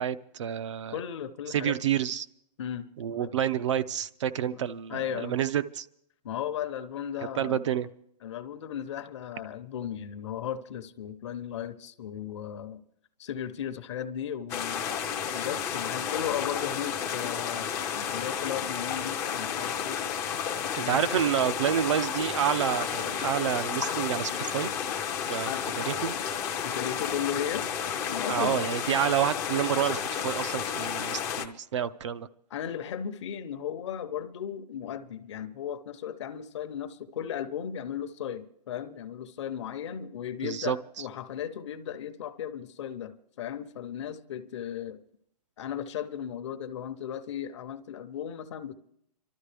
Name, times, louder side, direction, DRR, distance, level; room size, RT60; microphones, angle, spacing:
voice 1, 0.0-1.0 1.5-2.3 3.0-5.9 7.4-7.9 20.8-24.7 25.3-25.5 25.8-26.2 28.3-32.3 40.4-40.8, right 9 dB, 45° right, 0.5 m, -29 dB
voice 2, 0.9-1.8 2.6-3.3 4.5-4.6 4.9-5.4 6.2-7.6 8.2-12.8 13.2-14.9 15.3-17.7 17.9-20.0 20.7-21.0 24.3-24.6 25.5-25.6 26.6-27.7 28.1-28.7 32.5-45.0 45.6-48.7, left 9 dB, 45° left, 0.8 m, -36 dB
sound 1, 14.5-31.5, left 8 dB, 10° left, 0.5 m, -32 dB
27.5 x 13.0 x 3.4 m
hypercardioid pair, 165°, 21 cm